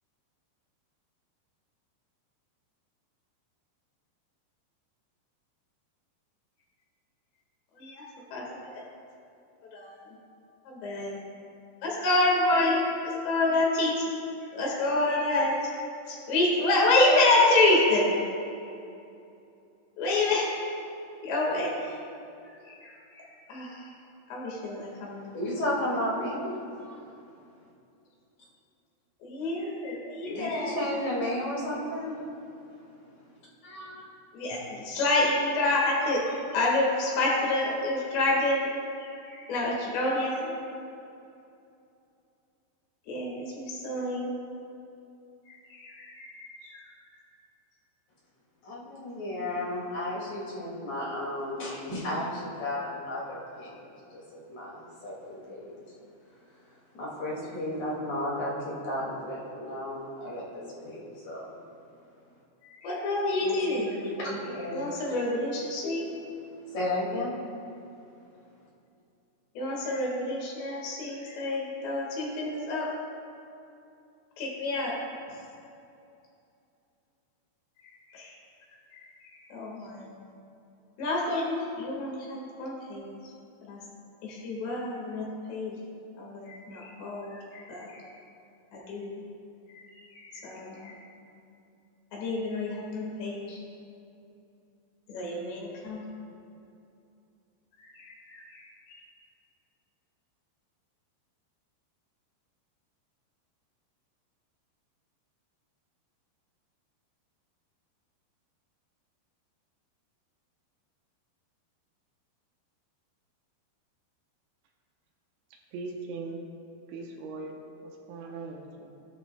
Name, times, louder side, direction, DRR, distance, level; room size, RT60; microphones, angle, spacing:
voice 1, 8.3-8.8 9.7-10.0 10.7-11.2 11.8-14.1 14.5-15.6 16.1-18.1 20.0-20.5 21.2-22.0 22.7-23.8 24.3-25.4 29.2-30.8 34.3-36.3 36.5-38.7 39.0-40.5 43.1-44.3 45.5-46.8 62.8-63.9 64.7-66.1 69.6-72.9 74.4-75.0 78.1-78.3 79.0-79.1 79.4-80.2 81.0-83.2 83.7-83.8 84.2-85.8 86.2-88.1 88.7-89.2 89.7-91.0 92.1-93.6 95.1-96.0 97.8-99.0, left 2 dB, 70° left, -3 dB, 4.0 m, -28 dB
voice 2, 25.3-27.1 30.2-32.2 33.6-34.0 34.5-34.6 36.3-36.4 48.6-53.8 54.1-55.7 57.0-61.5 63.4-64.9 66.7-67.3, left 1 dB, 45° left, -7 dB, 3.2 m, -33 dB
voice 3, 115.5-116.4 116.9-118.9, right 3 dB, 75° right, 1 dB, 3.1 m, -40 dB
16.5 x 13.0 x 2.3 m, 2.6 s
omnidirectional pair, 5.3 m